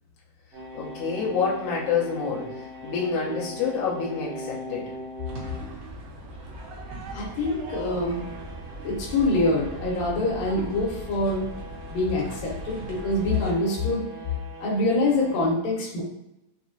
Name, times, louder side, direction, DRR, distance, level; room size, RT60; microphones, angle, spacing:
sound 1, 0.5-5.7 7.6-15.5, equal, 55° right, 0.6 m, -41 dB
voice 1, 0.7-2.5 2.8-4.9, left 5 dB, 70° left, -5 dB, 2.3 m, -27 dB
sound 2, 5.2-13.5, right 1 dB, 75° right, 2.5 m, -39 dB
voice 2, 7.1-8.2 8.8-11.5 11.9-14.1 14.6-16.0, left 2 dB, 90° left, -2 dB, 2.7 m, -25 dB
6.0 x 2.8 x 2.7 m, 0.87 s
omnidirectional pair, 3.7 m